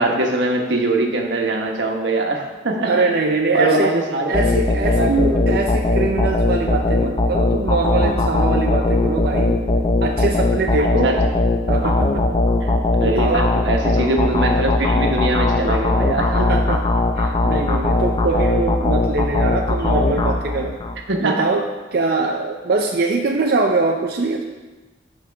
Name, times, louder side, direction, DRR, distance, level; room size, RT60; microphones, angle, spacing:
voice 1, 0.0-3.0 3.5-4.3 4.8-5.6 10.8-11.2 12.6-12.7 13.0-16.5 21.1-21.5, right 2 dB, 85° right, 1 dB, 1.3 m, -22 dB
voice 2, 2.8-3.9 4.3-5.1 5.5-9.6 10.0-11.2 11.7-12.3 13.0-13.5 16.3-20.8 21.2-24.4, right 3 dB, 55° right, 1 dB, 0.5 m, -22 dB
sound 1, 4.3-21.0, left 2 dB, 25° left, 0.6 m, -19 dB
13.5 x 5.2 x 3.5 m, 1.2 s
head